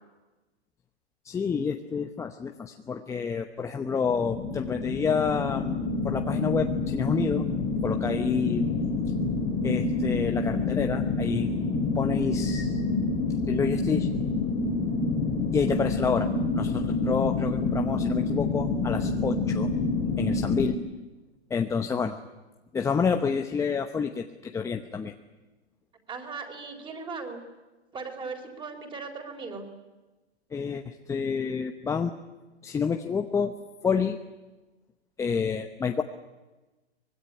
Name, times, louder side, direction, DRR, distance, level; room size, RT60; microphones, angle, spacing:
voice 1, 1.2-7.5 7.8-8.7 9.6-11.5 11.9-12.8 13.5-14.1 15.5-16.3 16.5-19.7 20.2-20.7 21.5-22.2 22.7-25.1 30.5-32.1 32.6-33.5 33.8-34.2 35.2-36.0, left 6 dB, 10° left, 5 dB, 0.8 m, -28 dB
sound 1, 4.1-20.8, left 3 dB, 30° left, 2.6 m, -28 dB
voice 2, 26.1-27.4 27.9-29.7, right 4 dB, 15° right, 5 dB, 4.1 m, -38 dB
24.5 x 20.5 x 10.0 m, 1.1 s
hypercardioid pair, 135°, 33 cm